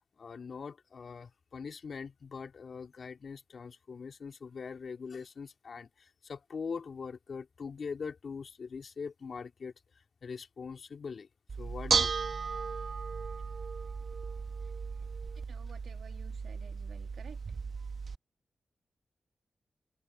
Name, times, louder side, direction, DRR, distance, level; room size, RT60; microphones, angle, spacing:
voice 1, 0.2-9.7 10.2-11.3 11.6-12.3, left 5 dB, 60° left, 2.8 m, -42 dB
Bell / Dishes pots and pans, 11.5-18.2, right 5 dB, 60° right, 1.2 m, -35 dB
voice 2, 15.5-17.4, right 7 dB, 85° right, 2.7 m, -53 dB
cardioid pair, 85°, 0 cm